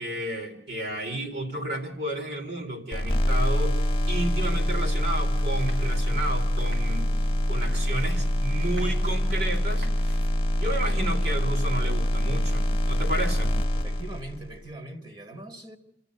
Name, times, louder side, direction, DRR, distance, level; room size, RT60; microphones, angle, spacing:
voice 1, 0.0-7.1 7.5-9.9 10.5-13.5, right 1 dB, 65° right, 3.8 m, -32 dB
sound 1, 2.9-14.6, equal, 30° left, 1.5 m, -25 dB
sound 2, 5.3-10.3, right 1 dB, 80° right, 4.3 m, -50 dB
voice 2, 13.8-15.8, right 2 dB, 30° right, 2.0 m, -41 dB
28.5 x 13.0 x 8.0 m
head